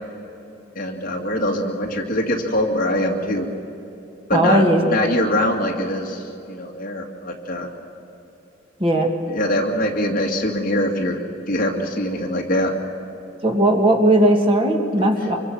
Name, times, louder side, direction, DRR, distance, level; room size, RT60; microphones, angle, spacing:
voice 1, 0.8-3.5 4.3-7.7 9.3-11.2 11.5-12.7, left 1 dB, 40° left, 1 dB, 2.3 m, -23 dB
voice 2, 4.3-4.8 8.8-9.1 13.4-15.4, right 1 dB, 25° right, 2 dB, 1.9 m, -17 dB
26.0 x 23.5 x 6.1 m, 3.0 s
head